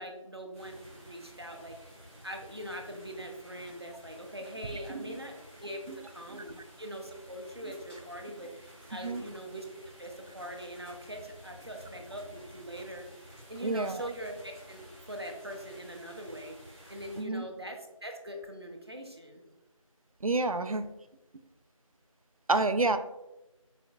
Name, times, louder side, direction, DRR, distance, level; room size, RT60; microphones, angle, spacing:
voice 1, 0.0-1.9 2.2-5.3 5.6-13.0 13.5-19.4, equal, 50° right, 3 dB, 0.6 m, -42 dB
sound 1, 0.5-17.2, equal, 20° left, 1.5 m, -53 dB
voice 2, 13.6-14.1 17.2-17.4 20.2-20.9 22.5-23.0, right 3 dB, 85° right, 10 dB, 0.4 m, -28 dB
4.4 x 4.3 x 2.3 m, 0.97 s
figure-of-eight pair, 175°, 18 cm